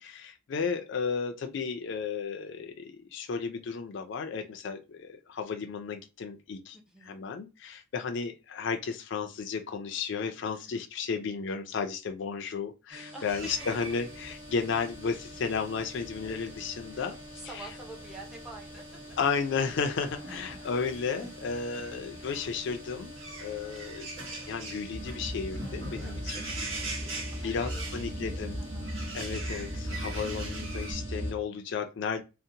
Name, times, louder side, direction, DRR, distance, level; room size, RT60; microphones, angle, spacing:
voice 1, 0.0-6.8 7.1-17.2 19.2-26.5 27.4-28.6 29.1-32.2, left 5 dB, 60° left, 0.4 m, -33 dB
voice 2, 6.9-7.3 10.4-10.6 12.9-13.2 15.1-15.3 16.9-18.8 20.3-20.4 26.0-28.9, right 2 dB, 5° right, 0.6 m, -49 dB
sound 1, 12.9-31.3, equal, 20° right, 1.0 m, -47 dB
sound 2, 13.3-30.9, right 2 dB, 70° right, 1.0 m, -44 dB
sound 3, 24.9-31.3, equal, 50° right, 0.6 m, -37 dB
2.8 x 2.0 x 2.5 m
head